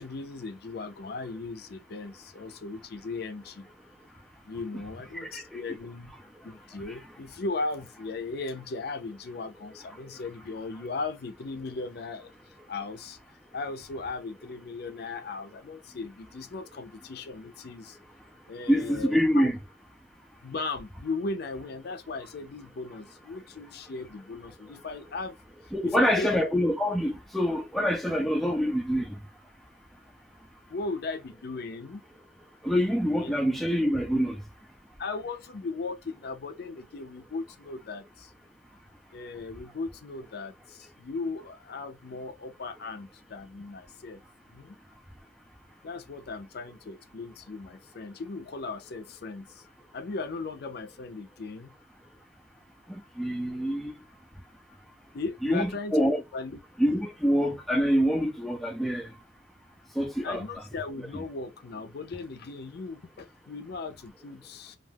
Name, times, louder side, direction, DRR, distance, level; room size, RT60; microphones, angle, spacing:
voice 1, 0.0-3.7 4.5-6.1 6.4-13.2 13.5-18.0 18.5-19.5 20.4-25.4 25.8-26.4 30.7-32.0 33.0-33.3 35.0-38.3 39.1-44.2 44.5-44.8 45.8-49.7 49.9-51.7 55.1-56.6 60.2-64.8, left 3 dB, 60° left, 0.5 m, -37 dB
voice 2, 18.7-19.6 25.7-29.2 32.6-34.4 52.9-53.9 55.4-56.2 56.8-59.1 60.0-60.4, equal, ahead, 0.4 m, -26 dB
2.4 x 2.3 x 3.3 m
head